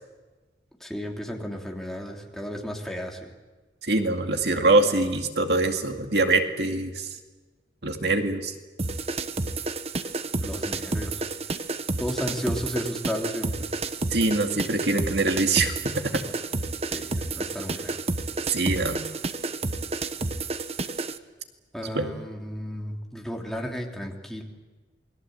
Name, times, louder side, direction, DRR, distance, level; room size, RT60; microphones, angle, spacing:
voice 1, 0.8-3.2 10.4-11.2 12.0-13.7 16.9-18.0 21.7-24.4, equal, ahead, 0 dB, 3.1 m, -33 dB
voice 2, 3.9-7.1 7.8-8.5 14.1-16.1 18.5-19.0 21.9-22.1, right 2 dB, 70° right, 5 dB, 2.3 m, -24 dB
sound 1, 8.8-21.2, right 3 dB, 35° right, 1.0 m, -30 dB
28.5 x 22.0 x 8.0 m, 1.3 s
head